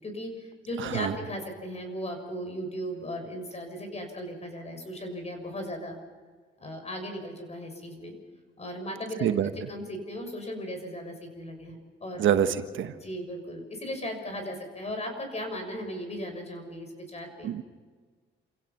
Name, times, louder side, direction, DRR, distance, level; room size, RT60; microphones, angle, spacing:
voice 1, 0.0-6.0 6.6-8.1 8.6-9.3 9.6-12.3 13.0-17.5, equal, 35° left, 5 dB, 6.6 m, -37 dB
voice 2, 0.8-1.1 9.2-9.5 12.2-12.9 17.4-17.6, right 9 dB, 75° right, 9 dB, 1.4 m, -26 dB
28.5 x 16.5 x 6.0 m, 1.5 s
cardioid pair, 90°, 20 cm